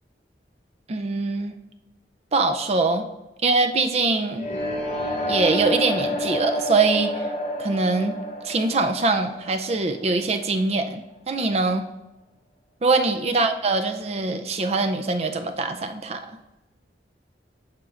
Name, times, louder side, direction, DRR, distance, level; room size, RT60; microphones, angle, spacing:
voice 1, 0.9-1.6 2.3-3.1 3.4-4.5 5.3-7.3 7.6-8.2 8.4-11.9 12.8-16.3, right 3 dB, 35° right, 6 dB, 0.4 m, -23 dB
sound 1, 4.3-10.2, equal, 35° left, 1.1 m, -29 dB
13.0 x 4.5 x 2.5 m, 1.0 s
head